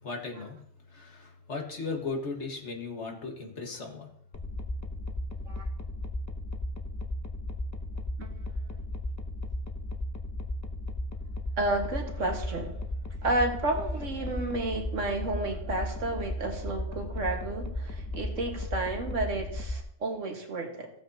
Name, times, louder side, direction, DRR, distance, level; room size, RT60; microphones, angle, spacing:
voice 1, 0.0-0.6 0.9-4.1, left 4 dB, 70° left, 2 dB, 1.8 m, -36 dB
sound 1, 4.3-19.8, left 1 dB, 20° left, 0.5 m, -35 dB
voice 2, 11.6-12.8 13.2-20.9, right 2 dB, 85° right, 2 dB, 1.9 m, -31 dB
15.0 x 7.9 x 2.8 m, 0.67 s
omnidirectional pair, 1.2 m